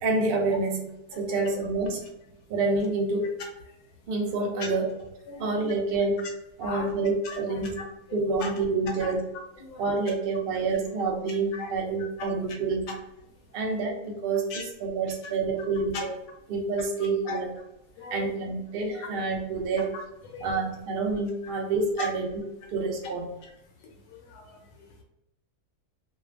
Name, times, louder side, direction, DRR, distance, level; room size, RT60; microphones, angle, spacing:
voice 1, 0.0-0.9 1.2-2.1 2.5-3.3 4.1-4.9 5.4-6.2 6.6-7.8 8.1-9.2 9.8-12.9 13.5-16.1 16.5-17.5 18.1-19.9 20.4-22.4 22.7-23.3, right 3 dB, 75° right, 0 dB, 0.5 m, -28 dB
voice 2, 18.0-18.3 18.9-19.1 19.9-20.5 22.0-22.1 24.3-24.6, left 4 dB, 85° left, 1 dB, 1.2 m, -37 dB
2.7 x 2.2 x 2.4 m, 0.87 s
omnidirectional pair, 1.6 m